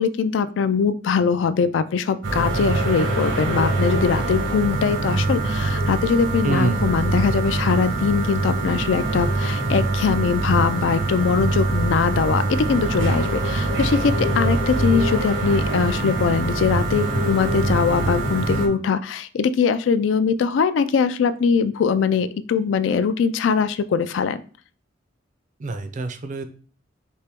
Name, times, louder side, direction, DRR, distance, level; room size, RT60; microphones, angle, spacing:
voice 1, 0.0-24.4, left 6 dB, 75° left, 13 dB, 0.3 m, -21 dB
sound 1, 2.2-18.7, right 2 dB, 80° right, 1.0 m, -23 dB
voice 2, 6.4-6.9 25.6-26.5, right 3 dB, 40° right, 9 dB, 0.4 m, -25 dB
4.4 x 2.9 x 3.4 m, 0.43 s
head